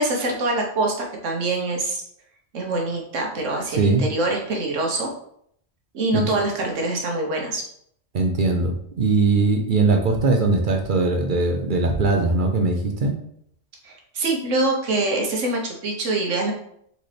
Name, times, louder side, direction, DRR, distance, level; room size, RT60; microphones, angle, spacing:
voice 1, 0.0-2.0 2.5-5.1 5.9-7.6 13.8-16.5, right 2 dB, 85° right, 0 dB, 1.4 m, -24 dB
voice 2, 3.7-4.0 6.1-6.2 8.1-13.1, right 3 dB, 50° right, 3 dB, 0.7 m, -20 dB
4.1 x 3.9 x 3.3 m, 0.69 s
omnidirectional pair, 1.2 m